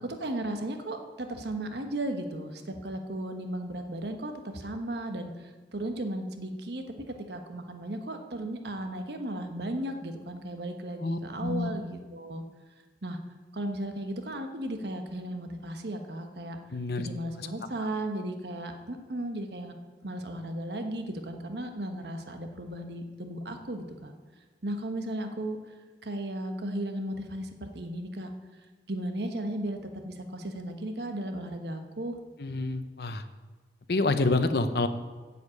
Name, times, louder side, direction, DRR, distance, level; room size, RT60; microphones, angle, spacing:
voice 1, 0.0-12.4 13.0-13.2 13.5-16.6 17.0-19.7 20.0-24.1 24.6-25.7 26.0-28.3 28.9-29.8 30.0-32.2, right 1 dB, 70° right, 5 dB, 1.2 m, -35 dB
voice 2, 11.0-11.7 16.7-17.1 32.4-33.2 33.9-34.9, left 2 dB, 65° left, 10 dB, 0.8 m, -27 dB
8.2 x 7.2 x 8.5 m, 1.4 s
head